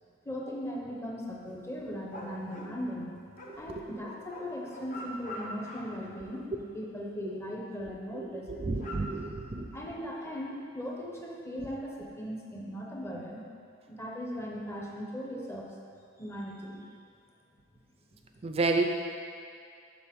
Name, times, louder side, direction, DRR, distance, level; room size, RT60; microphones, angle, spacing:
voice 1, 0.2-3.1 3.6-8.7 9.7-13.4 13.9-15.7 16.2-16.8, equal, 15° left, -2 dB, 0.8 m, -38 dB
sound 1, 1.5-6.0 6.3-6.8 7.4-7.5 7.8-7.9 8.3-10.2 10.8-10.9, equal, 40° left, 0.9 m, -45 dB
voice 2, 3.5-3.8 7.8-9.7 18.4-18.8, right 3 dB, 30° right, 4 dB, 0.5 m, -31 dB
7.0 x 5.6 x 3.6 m, 2.3 s
head